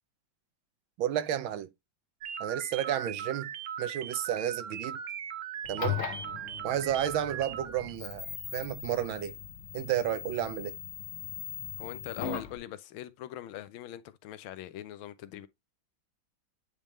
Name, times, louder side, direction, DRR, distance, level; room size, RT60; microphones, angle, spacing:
voice 1, 1.0-1.7 2.4-3.5 3.8-5.0 5.7-6.0 6.6-8.3 8.5-9.3 9.7-10.8, right 11 dB, 80° right, 1.5 m, -31 dB
sound 1, 2.2-8.0, right 8 dB, 65° right, 1.0 m, -39 dB
sound 2, 5.6-12.6, left 9 dB, 60° left, 0.7 m, -39 dB
voice 2, 11.8-15.5, left 13 dB, 85° left, 1.5 m, -42 dB
8.8 x 3.5 x 3.1 m
omnidirectional pair, 2.2 m